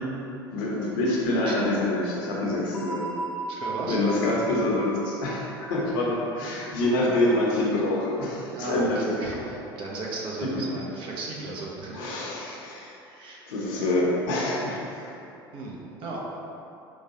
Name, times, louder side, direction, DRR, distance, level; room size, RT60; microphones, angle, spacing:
voice 1, 0.5-3.1 3.8-9.3 11.9-12.9 13.5-15.1, left 1 dB, 60° left, -4 dB, 0.7 m, -26 dB
sound 1, 2.7-7.4, right 3 dB, 10° left, 0.8 m, -37 dB
voice 2, 3.5-4.2 8.5-12.1 13.1-13.5 15.5-16.2, right 2 dB, 45° right, -3 dB, 0.7 m, -35 dB
4.6 x 2.3 x 2.8 m, 2.7 s
figure-of-eight pair, 65°, 13 cm